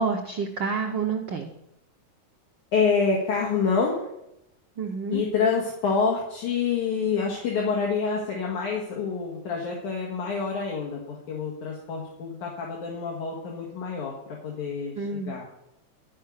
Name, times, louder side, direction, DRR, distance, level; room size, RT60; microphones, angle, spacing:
voice 1, 0.0-1.5 4.8-5.2 15.0-15.3, right 5 dB, 80° right, 3 dB, 1.0 m, -28 dB
voice 2, 2.7-4.1 5.1-15.5, left 5 dB, 75° left, -2 dB, 3.4 m, -27 dB
13.5 x 5.7 x 9.4 m, 0.83 s
omnidirectional pair, 3.5 m